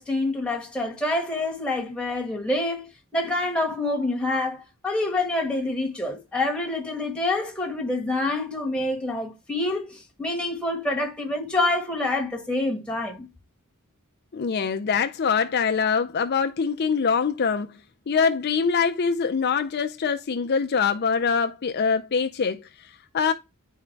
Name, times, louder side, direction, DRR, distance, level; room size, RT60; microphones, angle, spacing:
voice 1, 0.0-13.3, left 2 dB, 5° left, 1.5 m, -27 dB
voice 2, 14.3-17.8 18.1-23.3, left 6 dB, 50° left, 0.5 m, -24 dB
9.6 x 3.7 x 4.5 m
head